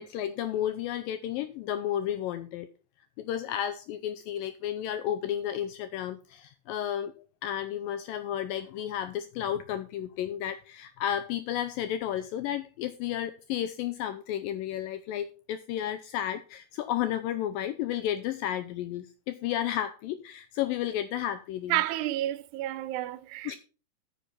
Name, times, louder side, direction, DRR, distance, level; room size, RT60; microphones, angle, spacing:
voice 1, 0.0-2.7 3.2-7.1 7.4-21.8 23.5-23.6, left 11 dB, 85° left, 2.0 m, -32 dB
voice 2, 21.7-23.6, right 14 dB, 90° right, 2.8 m, -30 dB
9.4 x 6.8 x 5.8 m
omnidirectional pair, 4.6 m